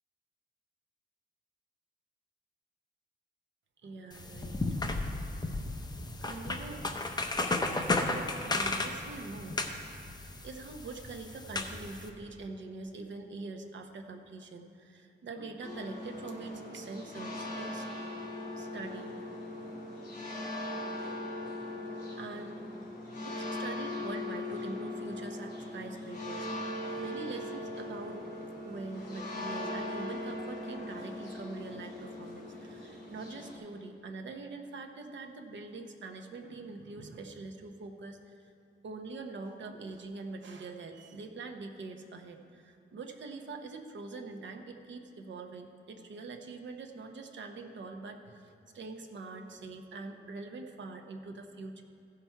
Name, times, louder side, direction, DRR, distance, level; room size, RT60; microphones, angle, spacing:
voice 1, 3.8-4.6 6.2-6.8 8.1-9.7 10.2-17.9 18.6-19.2 21.9-22.6 23.2-28.2 28.6-38.5 38.8-51.8, right 3 dB, 75° right, 4 dB, 0.8 m, -44 dB
sound 1, 4.1-12.1, left 2 dB, 20° left, 0.6 m, -34 dB
sound 2, 15.6-33.6, left 1 dB, 50° left, 2.6 m, -40 dB
15.0 x 5.8 x 4.5 m, 2.5 s
wide cardioid pair, 150°, 19 cm